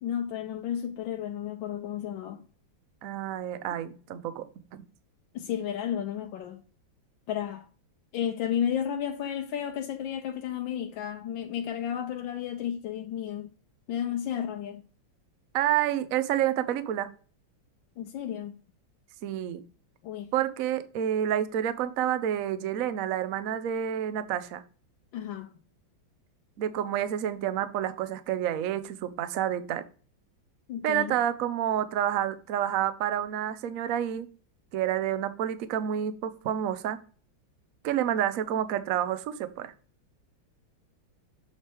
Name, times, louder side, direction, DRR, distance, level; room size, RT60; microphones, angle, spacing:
voice 1, 0.0-2.4 5.3-6.6 7.3-7.6 8.1-13.5 13.9-14.8 18.0-18.5 20.0-20.3 25.1-25.5 30.7-31.2, left 9 dB, 80° left, 1.4 m, -32 dB
voice 2, 3.0-4.4 15.5-17.1 19.2-19.6 20.3-24.6 26.6-29.8 30.8-34.3 34.7-37.0 37.8-39.7, right 10 dB, 65° right, 0.8 m, -29 dB
7.4 x 3.3 x 4.5 m
omnidirectional pair, 2.1 m